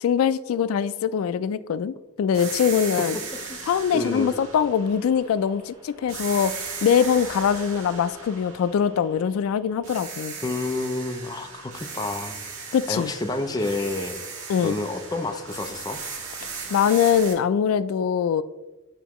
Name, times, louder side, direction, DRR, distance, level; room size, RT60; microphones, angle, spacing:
voice 1, 0.0-3.2 3.7-6.5 6.8-10.4 12.7-13.1 14.5-14.8 16.7-18.4, left 7 dB, 90° left, 15 dB, 0.3 m, -22 dB
sound 1, 2.3-5.6 6.1-9.5 9.8-17.3, right 5 dB, 80° right, 1.3 m, -37 dB
Engine, 3.8-9.2, right 1 dB, 15° right, 1.1 m, -49 dB
voice 2, 3.9-4.3 10.4-12.4 12.9-14.2 14.6-16.0, left 2 dB, 20° left, 6 dB, 0.4 m, -29 dB
9.0 x 4.6 x 3.0 m, 1.1 s
head